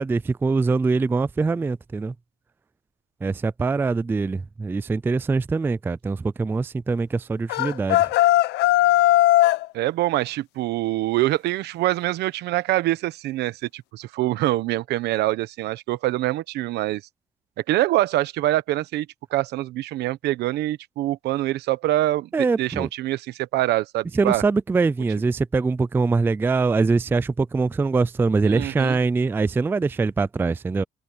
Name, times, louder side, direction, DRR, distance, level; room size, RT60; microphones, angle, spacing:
voice 1, 0.0-2.1 3.2-8.1 22.3-22.9 24.1-30.8, right 4 dB, 15° right, 0.3 m, -23 dB
sound 1, 7.5-9.7, left 15 dB, 85° left, 0.7 m, -18 dB
voice 2, 9.7-17.0 17.7-19.1 19.3-22.3 22.6-24.4 28.5-29.0, right 16 dB, 80° right, 1.2 m, -24 dB
open air
cardioid pair, 110°, 17 cm